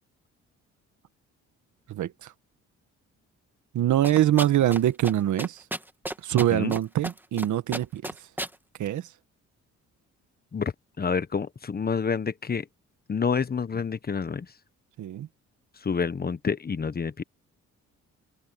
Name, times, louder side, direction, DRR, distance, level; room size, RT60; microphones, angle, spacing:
voice 1, 1.9-2.3 3.7-5.6 6.2-8.0 8.8-9.1 15.0-15.3, right 12 dB, 75° right, 1.7 m, -24 dB
sound 1, 4.0-4.8 5.0-5.1 5.4-6.8 7.0-7.5 7.7-8.5, right 1 dB, 5° right, 2.6 m, -32 dB
voice 2, 10.5-12.6 13.1-14.5 15.8-17.2, left 5 dB, 30° left, 1.2 m, -28 dB
cardioid pair, 90°, 30 cm